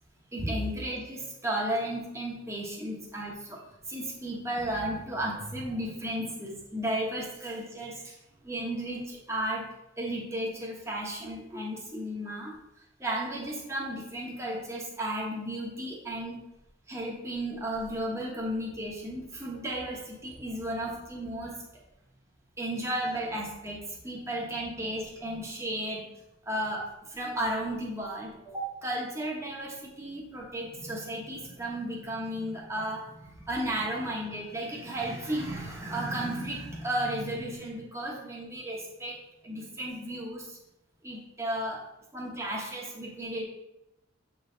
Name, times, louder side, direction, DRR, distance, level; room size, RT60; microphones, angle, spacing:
voice 1, 0.3-8.2 8.4-9.7 10.0-12.5 13.0-16.4 16.9-21.8 22.6-26.1 26.4-40.6 41.0-41.8 42.1-43.4, right 1 dB, 15° right, -3 dB, 1.2 m, -34 dB
7.8 x 4.0 x 3.9 m, 0.91 s
head